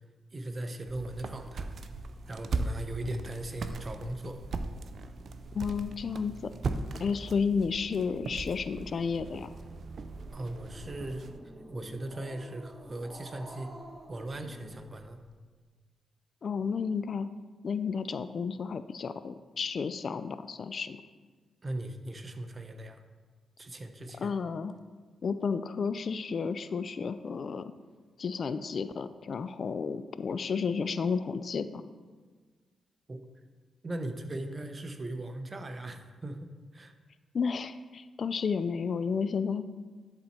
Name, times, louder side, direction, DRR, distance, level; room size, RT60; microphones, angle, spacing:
voice 1, 0.3-1.8 2.3-4.4 10.3-11.3 11.7-13.7 14.1-15.2 21.6-23.0 23.6-24.3 33.1-33.2 33.8-36.9, right 1 dB, 35° right, 7 dB, 0.8 m, -38 dB
sound 1, 0.8-11.4, right 3 dB, 60° right, 0.5 m, -39 dB
voice 2, 5.5-6.5 7.0-9.5 16.4-17.3 17.6-21.0 24.2-24.8 25.2-27.7 28.2-31.8 37.3-39.6, left 5 dB, 60° left, 12 dB, 0.4 m, -32 dB
Growling, 10.0-15.3, right 1 dB, 15° right, 1.7 m, -49 dB
10.5 x 4.2 x 4.3 m, 1.4 s
supercardioid pair, 45°, 0 cm